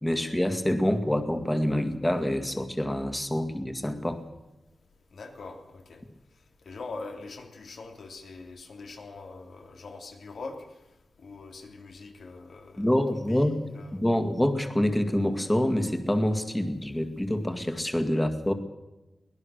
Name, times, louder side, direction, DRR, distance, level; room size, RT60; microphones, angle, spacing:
voice 1, 0.0-4.2 12.8-13.6 13.9-18.5, left 1 dB, 10° left, 7 dB, 2.0 m, -26 dB
voice 2, 5.1-6.0 6.6-10.6 11.2-14.0, left 3 dB, 75° left, 4 dB, 3.2 m, -43 dB
23.5 x 19.0 x 6.5 m, 1.0 s
wide cardioid pair, 145°, 0 cm